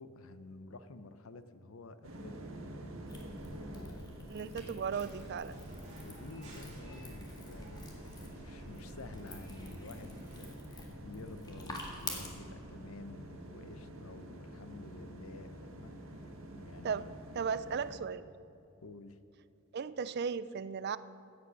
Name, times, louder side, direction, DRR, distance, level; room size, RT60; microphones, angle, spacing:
voice 1, 0.0-2.5 3.2-4.0 4.4-4.6 6.0-17.1 18.8-19.2, left 3 dB, 90° left, 12 dB, 0.7 m, -51 dB
sound 1, 2.0-18.0, right 1 dB, 75° right, 1.4 m, -48 dB
sound 2, 3.1-12.3, left 2 dB, 20° left, 1.8 m, -48 dB
voice 2, 4.3-5.6 16.8-17.1 17.3-18.2 19.7-21.0, right 6 dB, 50° right, 15 dB, 0.4 m, -36 dB
sound 3, 4.9-10.6, right 1 dB, 35° right, 2.7 m, -56 dB
16.0 x 8.2 x 6.2 m, 2.6 s
head